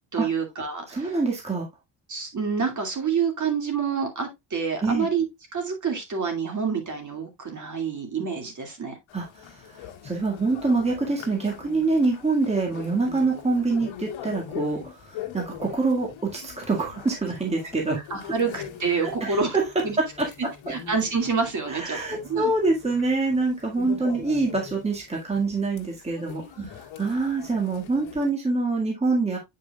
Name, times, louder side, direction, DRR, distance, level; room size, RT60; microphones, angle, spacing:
voice 1, 0.1-1.0 2.1-5.2 5.5-9.0 18.1-19.6 19.8-20.0 20.7-22.5 26.6-26.7, right 5 dB, 35° right, 2.4 m, -27 dB
voice 2, 0.9-1.7 4.8-5.1 9.1-18.3 19.0-19.6 20.0-20.3 21.7-26.4 27.0-29.4, right 3 dB, 10° right, 1.9 m, -25 dB
sound 1, 9.1-28.3, left 9 dB, 70° left, 1.7 m, -42 dB
8.7 x 5.5 x 2.3 m
cardioid pair, 135°, 50 cm